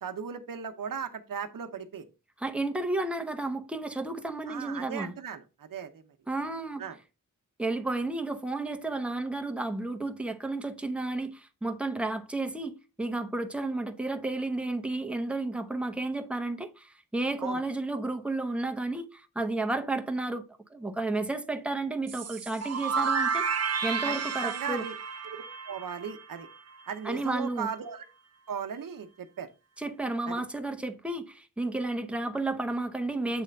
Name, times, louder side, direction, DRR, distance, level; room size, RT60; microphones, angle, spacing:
voice 1, 0.0-2.0 4.5-6.0 6.8-7.0 17.4-17.6 24.0-24.1 24.4-24.9 25.2-26.5 26.9-28.0 28.5-29.5 30.3-30.4, right 7 dB, 75° right, 0.9 m, -37 dB
voice 2, 2.4-5.1 6.3-6.8 7.6-20.4 20.7-24.8 27.0-27.7 29.8-33.4, right 2 dB, 5° right, 0.9 m, -32 dB
sound 1, 22.1-26.8, right 5 dB, 50° right, 0.6 m, -31 dB
7.9 x 3.3 x 5.2 m
cardioid pair, 65°, 34 cm